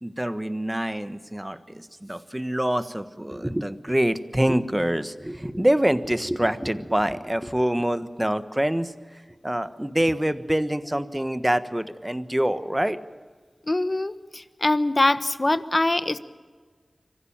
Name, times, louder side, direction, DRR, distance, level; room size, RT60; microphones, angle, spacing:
voice 1, 0.0-8.9 9.4-13.0, right 1 dB, 15° right, 12 dB, 1.3 m, -25 dB
voice 2, 13.7-16.2, left 2 dB, 40° left, 13 dB, 1.1 m, -23 dB
25.0 x 15.0 x 8.9 m, 1.5 s
cardioid pair, 40°, 0 cm